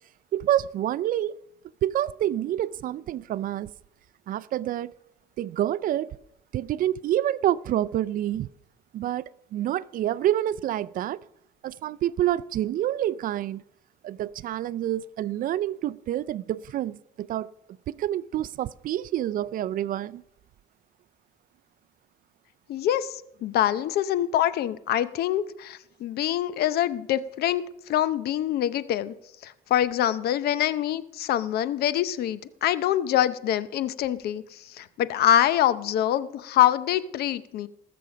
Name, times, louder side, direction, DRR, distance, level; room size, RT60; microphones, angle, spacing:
voice 1, 0.3-1.4 1.8-3.7 4.3-4.9 5.4-6.1 6.5-8.5 8.9-9.2 9.5-11.2 11.6-13.6 14.0-17.5 17.9-20.2, right 12 dB, 55° right, 0.4 m, -27 dB
voice 2, 22.7-27.6 27.9-29.1 29.4-37.7, left 11 dB, 70° left, 0.7 m, -25 dB
19.5 x 6.9 x 5.0 m
cardioid pair, 110°, 17 cm